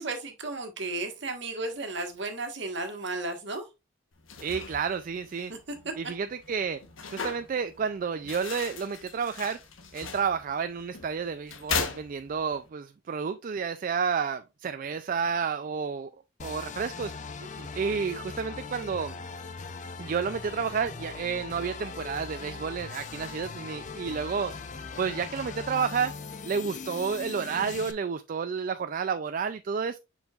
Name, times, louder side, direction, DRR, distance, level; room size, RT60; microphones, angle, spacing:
voice 1, 0.0-3.7 5.5-5.9 17.4-17.7, right 2 dB, 60° right, 1.5 m, -34 dB
sound 1, 4.1-12.7, left 5 dB, 85° left, 1.1 m, -38 dB
voice 2, 4.4-5.5 6.0-6.8 7.1-9.6 9.9-16.1 16.4-17.1 17.7-19.2 20.0-24.5 25.0-26.1 26.4-30.0, right 6 dB, 45° right, 0.3 m, -30 dB
sound 2, 16.4-27.9, left 4 dB, 40° left, 0.6 m, -40 dB
7.0 x 5.5 x 2.4 m
head